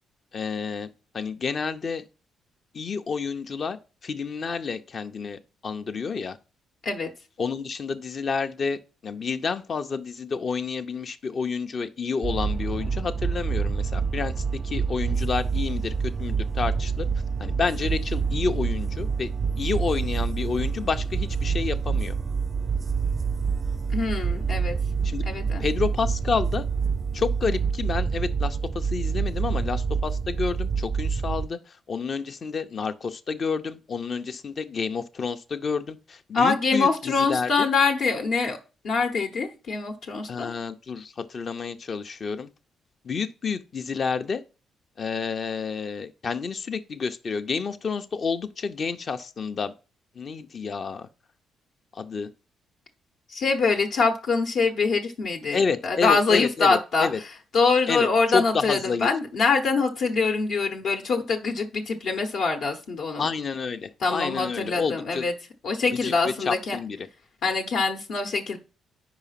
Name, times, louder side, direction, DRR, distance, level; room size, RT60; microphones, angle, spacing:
voice 1, 0.3-2.0 2.7-6.4 7.4-8.8 9.0-14.3 14.6-15.9 16.2-17.1 17.4-19.3 19.6-22.1 25.0-25.3 25.6-26.6 27.1-37.7 40.3-42.5 43.0-44.4 45.0-49.7 50.2-51.1 51.9-52.3 55.5-57.2 57.9-59.1 63.2-65.2 65.9-67.1, left 5 dB, 45° left, 0.6 m, -29 dB
sound 1, 12.2-31.5, right 5 dB, 30° right, 0.3 m, -27 dB
voice 2, 23.9-24.8 25.3-25.6 36.3-38.6 38.8-40.5 53.3-57.1 57.5-63.3 64.0-65.3 65.6-66.8 67.4-68.6, left 4 dB, 65° left, 1.0 m, -24 dB
5.0 x 4.7 x 5.7 m
cardioid pair, 90°, 0 cm